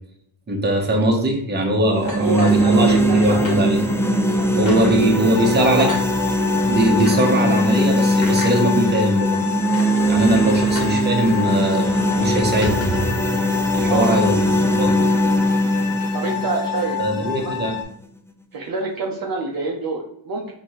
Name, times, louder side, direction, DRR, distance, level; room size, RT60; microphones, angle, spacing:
voice 1, 0.5-3.8 4.5-5.9 6.7-9.4 10.1-11.9 12.2-12.8 13.7-14.9 17.0-17.8, right 1 dB, 20° right, 1 dB, 1.0 m, -20 dB
sound 1, 1.9-17.9, equal, 5° left, 0.3 m, -20 dB
voice 2, 2.0-3.5 4.3-6.0 10.3-10.5 13.9-14.3 16.1-17.8 18.5-20.5, right 3 dB, 45° right, -1 dB, 0.7 m, -27 dB
sound 2, 2.1-3.2 3.4-3.6 4.0-4.1 4.7-5.0 5.8-6.1 7.0-7.3 8.2-8.6 9.3-9.4 9.7-9.9 10.8-11.0 11.3-11.4 11.7-11.9 12.4-13.2, left 1 dB, 80° left, 1.4 m, -30 dB
sound 3, 5.3-17.8, left 11 dB, 45° left, 0.9 m, -29 dB
4.2 x 3.0 x 3.0 m, 0.72 s
cardioid pair, 85°, 48 cm